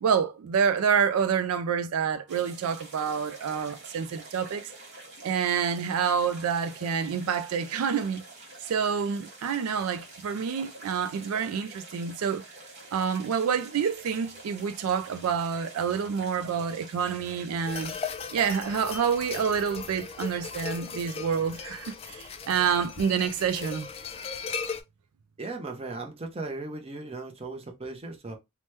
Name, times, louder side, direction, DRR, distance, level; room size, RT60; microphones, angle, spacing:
voice 1, 0.0-4.7 5.2-8.2 8.6-12.4 12.9-17.9 18.3-23.9, right 7 dB, 90° right, 0.3 m, -28 dB
sound 1, 2.3-18.0, right 2 dB, 50° right, 1.0 m, -47 dB
sound 2, 17.7-24.8, left 6 dB, 25° left, 0.3 m, -37 dB
voice 2, 25.4-28.4, right 2 dB, 30° right, 0.6 m, -37 dB
3.0 x 2.1 x 3.2 m
head